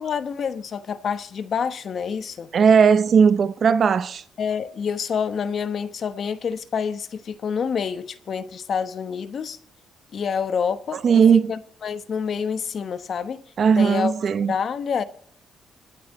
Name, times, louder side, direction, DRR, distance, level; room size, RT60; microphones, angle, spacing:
voice 1, 0.0-2.5 4.4-9.6 10.1-13.4 13.8-14.1 14.5-15.0, left 6 dB, 55° left, 1.1 m, -27 dB
voice 2, 2.5-4.2 10.9-11.5 13.6-14.5, right 6 dB, 50° right, 0.6 m, -17 dB
26.0 x 9.1 x 3.1 m
cardioid pair, 90°, 0 cm